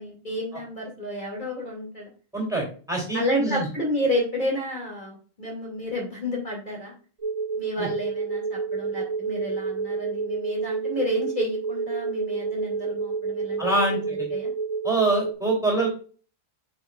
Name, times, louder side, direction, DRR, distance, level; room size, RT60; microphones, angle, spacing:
voice 1, 0.0-2.1 3.1-6.9 7.6-14.5, left 1 dB, 35° left, -2 dB, 2.7 m, -31 dB
voice 2, 2.3-3.7 7.8-7.9 13.6-14.3 14.8-15.9, right 2 dB, 5° right, -1 dB, 2.9 m, -25 dB
sound 1, 7.2-15.3, right 5 dB, 30° right, 0.9 m, -29 dB
8.5 x 5.7 x 2.4 m, 0.39 s
omnidirectional pair, 1.4 m